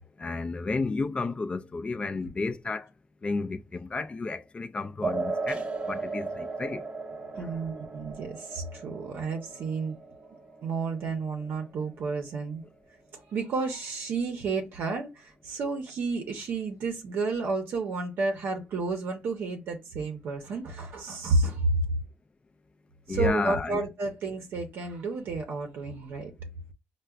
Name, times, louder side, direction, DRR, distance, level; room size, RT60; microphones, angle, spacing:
voice 1, 0.2-2.9 3.2-6.8 7.3-7.6 23.1-23.8, left 3 dB, 30° left, 0.3 m, -32 dB
sound 1, 5.0-12.0, right 3 dB, 30° right, 0.7 m, -36 dB
voice 2, 7.4-10.0 10.6-12.6 13.1-21.8 23.1-26.3, right 3 dB, 75° right, 0.7 m, -31 dB
4.4 x 2.2 x 2.3 m
cardioid pair, 95°, 4 cm